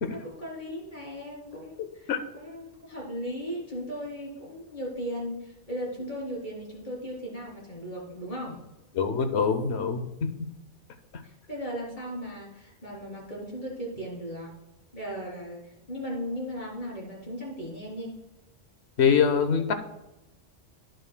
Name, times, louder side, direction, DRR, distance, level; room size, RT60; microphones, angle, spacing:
voice 1, 0.1-8.6 11.2-14.5 14.9-18.2, equal, 40° left, -4 dB, 3.7 m, -37 dB
voice 2, 8.9-10.0 19.0-19.7, left 6 dB, 65° left, 8 dB, 1.1 m, -23 dB
15.5 x 6.5 x 2.2 m, 0.96 s
omnidirectional pair, 1.2 m